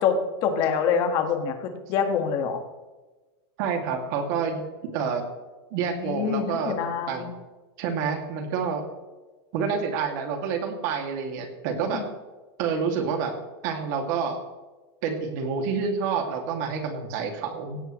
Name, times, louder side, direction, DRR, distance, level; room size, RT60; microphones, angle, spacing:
voice 1, 0.0-2.6 5.9-7.3 11.9-12.0, left 6 dB, 30° left, 5 dB, 1.7 m, -26 dB
voice 2, 3.6-5.2 5.7-6.7 7.1-7.3 7.8-8.8 9.5-12.0 12.6-13.3 13.6-14.4 15.0-17.8, right 6 dB, 40° right, 3 dB, 2.4 m, -28 dB
17.0 x 16.0 x 3.2 m, 1.2 s
supercardioid pair, 180°, 14 cm